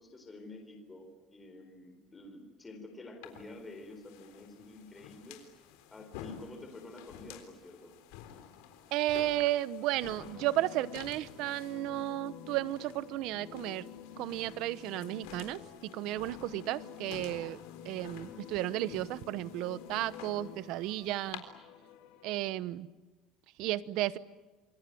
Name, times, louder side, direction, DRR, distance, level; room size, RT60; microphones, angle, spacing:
voice 1, 0.0-5.4 5.9-7.9, left 2 dB, 15° left, 4 dB, 4.2 m, -49 dB
sound 1, 3.2-21.4, left 9 dB, 90° left, 3.8 m, -51 dB
voice 2, 8.9-13.9 14.2-17.6 17.8-21.4 22.2-22.9 23.6-24.2, right 15 dB, 55° right, 16 dB, 0.9 m, -33 dB
sound 2, 9.9-22.5, left 9 dB, 70° left, 3.1 m, -49 dB
28.0 x 22.5 x 9.2 m, 1.2 s
cardioid pair, 170°, 0 cm